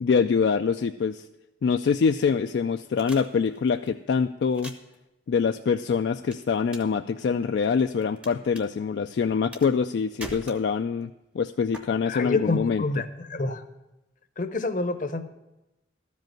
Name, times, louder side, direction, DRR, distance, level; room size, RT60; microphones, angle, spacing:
voice 1, 0.0-1.2 1.6-4.7 5.3-11.1 11.3-12.8, left 5 dB, 65° left, 7 dB, 0.3 m, -24 dB
sound 1, 3.0-3.9 4.5-4.9 6.3-7.0 7.2-8.3 8.5-8.6 9.5-9.9 10.2-11.0 11.7-11.8, right 1 dB, 5° right, 0.6 m, -42 dB
voice 2, 12.0-13.6 14.4-15.2, left 2 dB, 45° left, 9 dB, 0.7 m, -28 dB
13.0 x 5.3 x 7.5 m, 0.97 s
head